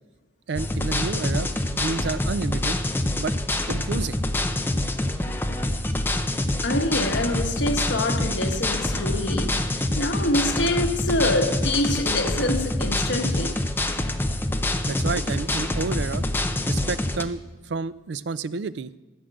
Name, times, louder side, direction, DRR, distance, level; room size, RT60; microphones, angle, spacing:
sound 1, 0.5-17.2, left 1 dB, 10° left, 0.6 m, -26 dB
voice 1, 0.5-2.8 3.2-3.3 3.7-4.2 14.9-16.2 16.7-18.9, right 4 dB, 65° right, 0.4 m, -30 dB
voice 2, 6.6-13.6, left 1 dB, 75° left, 1.2 m, -26 dB
14.5 x 6.5 x 7.8 m
head